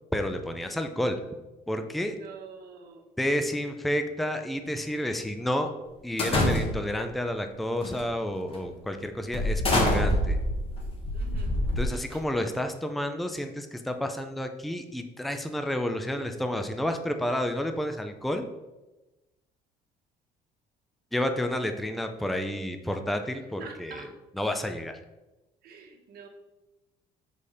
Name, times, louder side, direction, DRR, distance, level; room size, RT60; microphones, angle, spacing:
voice 1, 0.1-1.2 1.7-2.1 3.2-5.7 6.0-10.4 11.8-18.5 21.1-24.1 24.3-25.0, left 1 dB, ahead, 6 dB, 0.5 m, -30 dB
voice 2, 2.2-3.0 11.1-11.5 12.1-12.2 23.6-24.1 25.6-26.3, right 5 dB, 65° right, 1 dB, 1.2 m, -46 dB
sound 1, 6.2-7.0 7.8-8.1 8.5-8.7 9.3-12.2, left 1 dB, 35° left, 1.4 m, -26 dB
5.2 x 4.2 x 4.9 m, 1.1 s
cardioid pair, 110°, 17 cm